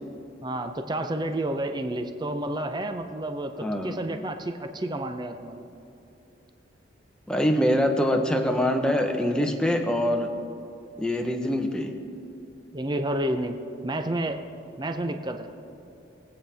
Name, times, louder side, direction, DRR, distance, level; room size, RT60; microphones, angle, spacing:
voice 1, 0.4-5.7 12.7-13.6 13.8-14.4 14.8-15.5, right 1 dB, 20° right, 7 dB, 0.5 m, -30 dB
voice 2, 3.6-3.9 7.3-10.3 11.0-11.9, equal, 5° left, 3 dB, 0.8 m, -24 dB
22.0 x 8.7 x 3.4 m, 2.7 s
head